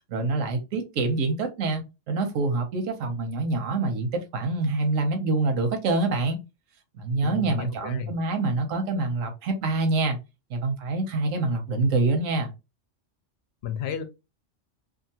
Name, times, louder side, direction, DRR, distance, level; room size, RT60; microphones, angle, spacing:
voice 1, 0.1-6.4 6.9-10.2 10.5-12.5, right 3 dB, 90° right, 1.1 m, -26 dB
voice 2, 7.2-8.1 13.6-14.0, left 8 dB, 65° left, 0.7 m, -32 dB
2.7 x 2.4 x 2.7 m
omnidirectional pair, 1.3 m